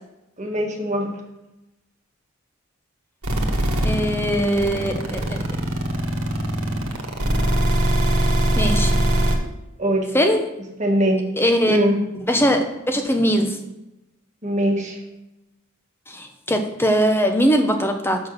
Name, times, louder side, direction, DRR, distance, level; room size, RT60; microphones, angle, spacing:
voice 1, 0.4-1.1 9.8-10.1 10.8-11.2 11.7-12.0 14.4-15.0, equal, 35° right, 1 dB, 1.5 m, -21 dB
sound 1, 3.2-9.4, right 1 dB, 90° right, 1.4 m, -21 dB
voice 2, 3.8-5.4 8.6-8.9 10.1-10.5 11.4-11.8 12.3-13.6 16.1-18.2, equal, 10° left, 5 dB, 0.8 m, -20 dB
6.4 x 6.1 x 6.4 m, 0.95 s
head